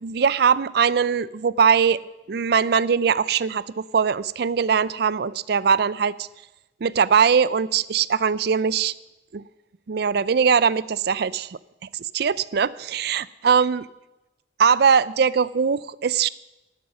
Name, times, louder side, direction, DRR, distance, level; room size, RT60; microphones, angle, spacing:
voice 1, 0.0-2.0 2.3-6.3 6.8-8.9 9.3-9.4 9.9-11.6 11.9-13.8 14.6-16.3, right 6 dB, 60° right, 19 dB, 0.4 m, -21 dB
12.5 x 12.0 x 6.1 m, 0.98 s
head